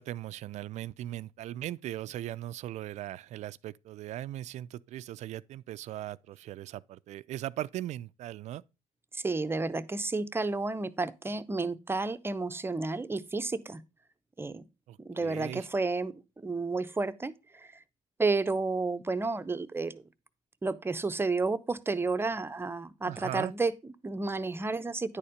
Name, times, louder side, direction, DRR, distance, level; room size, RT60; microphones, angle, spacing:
voice 1, 0.0-8.6 14.9-15.7 23.1-23.5, right 13 dB, 65° right, 0.4 m, -39 dB
voice 2, 9.1-13.8 14.4-14.7 15.0-17.8 18.2-20.0 20.6-25.2, right 3 dB, 20° right, 0.6 m, -31 dB
10.0 x 4.3 x 5.0 m
supercardioid pair, 80°, 13 cm